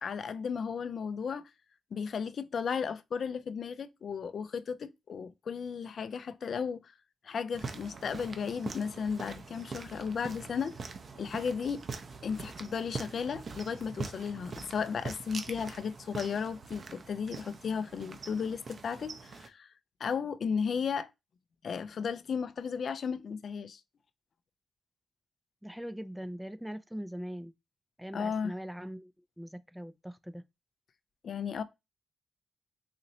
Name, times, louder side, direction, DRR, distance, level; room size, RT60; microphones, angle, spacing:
voice 1, 0.0-1.5 1.9-6.9 7.2-10.8 11.2-11.8 12.2-19.7 20.0-21.1 21.6-23.8 28.1-28.5 31.2-31.6, left 6 dB, 65° left, 0.4 m, -34 dB
sound 1, 7.5-19.5, right 4 dB, 55° right, 0.7 m, -43 dB
voice 2, 25.6-27.5 28.0-30.4, equal, 5° right, 0.4 m, -41 dB
4.0 x 2.9 x 2.7 m
cardioid pair, 60°, 0 cm